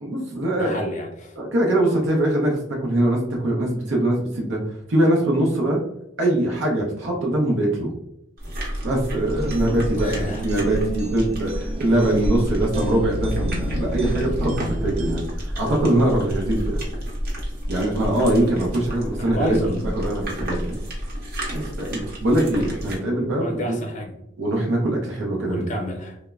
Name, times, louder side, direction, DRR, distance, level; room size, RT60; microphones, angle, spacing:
voice 1, 0.0-0.8 1.4-5.8 6.2-7.9 8.8-14.5 14.8-16.8 17.7-20.7 21.5-23.8 24.4-25.7, right 1 dB, 85° right, -2 dB, 0.6 m, -22 dB
voice 2, 0.6-1.4 10.0-10.5 19.2-19.8 23.4-24.1 25.5-26.2, equal, 40° left, 2 dB, 0.6 m, -30 dB
sound 1, 8.4-23.0, equal, 55° right, 0.8 m, -30 dB
sound 2, 9.4-15.2, right 1 dB, 35° right, 0.3 m, -31 dB
3.0 x 2.1 x 2.3 m, 0.82 s
head